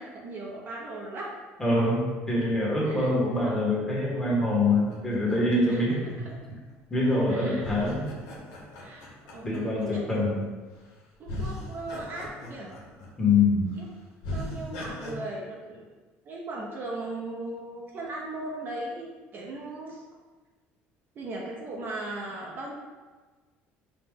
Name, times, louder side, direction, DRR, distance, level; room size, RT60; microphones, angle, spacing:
voice 1, 0.0-1.4 2.8-3.1 5.7-5.8 6.2-6.4 7.3-8.0 8.8-10.2 11.2-12.8 13.8-13.9 14.2-15.9 16.2-20.0 21.1-22.7, right 2 dB, 45° right, -2 dB, 0.8 m, -38 dB
voice 2, 1.6-6.0 6.9-8.1 9.4-10.4 13.2-13.7, left 2 dB, 10° left, -5 dB, 1.4 m, -24 dB
sound 1, 4.7-6.7 7.6-10.1 10.8-10.9 11.3-13.3 13.7-13.8 14.2-15.1, left 1 dB, 85° left, 1.0 m, -39 dB
4.9 x 2.5 x 3.7 m, 1.3 s
cardioid pair, 115°, 5 cm